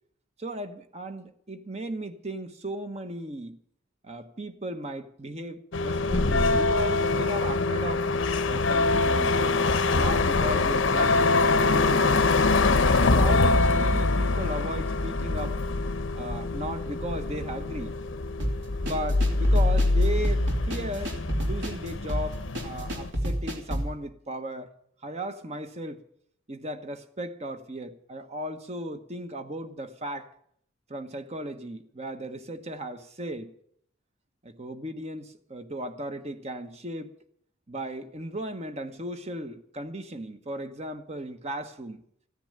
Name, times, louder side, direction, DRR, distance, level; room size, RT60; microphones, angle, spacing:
voice 1, 0.4-3.6 4.0-8.1 8.5-12.5 13.0-15.6 16.1-17.9 18.8-21.1 21.4-24.7 25.0-26.0 26.5-30.3 30.9-33.5 34.4-37.1 37.7-42.0, right 1 dB, 35° right, 1.2 m, -36 dB
sound 1, 5.7-23.1, left 3 dB, 75° left, 0.9 m, -24 dB
sound 2, 18.4-23.9, equal, 65° right, 3.4 m, -30 dB
15.0 x 10.0 x 8.9 m
head